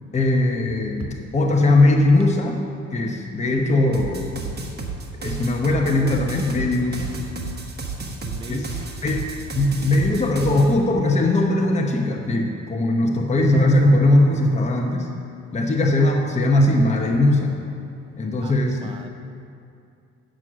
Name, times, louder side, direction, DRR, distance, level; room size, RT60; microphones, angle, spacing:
voice 1, 0.1-2.6 2.9-4.4 5.2-7.1 8.5-8.7 9.0-15.1 15.5-17.6 18.2-18.9, left 2 dB, 25° left, 1 dB, 0.9 m, -20 dB
sound 1, 3.9-10.7, right 4 dB, 35° right, 1.1 m, -32 dB
voice 2, 8.2-8.9 18.4-19.1, right 4 dB, 20° right, 7 dB, 0.4 m, -38 dB
9.1 x 6.2 x 6.2 m, 2.5 s
cardioid pair, 90°, 30 cm